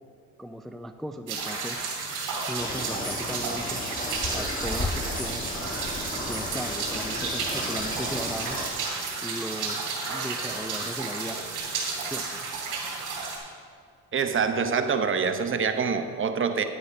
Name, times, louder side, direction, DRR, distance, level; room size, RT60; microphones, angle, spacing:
voice 1, 0.4-1.8 2.5-3.8 4.3-5.5 6.2-8.6 9.2-11.4 12.1-12.4, equal, ahead, 8 dB, 0.4 m, -37 dB
sound 1, 1.3-13.4, right 4 dB, 75° right, 2.7 m, -32 dB
sound 2, 2.6-8.7, left 3 dB, 30° left, 1.2 m, -34 dB
voice 2, 14.1-16.6, right 6 dB, 40° right, 8 dB, 0.9 m, -25 dB
9.9 x 7.9 x 5.4 m, 2.3 s
supercardioid pair, 80°, 31 cm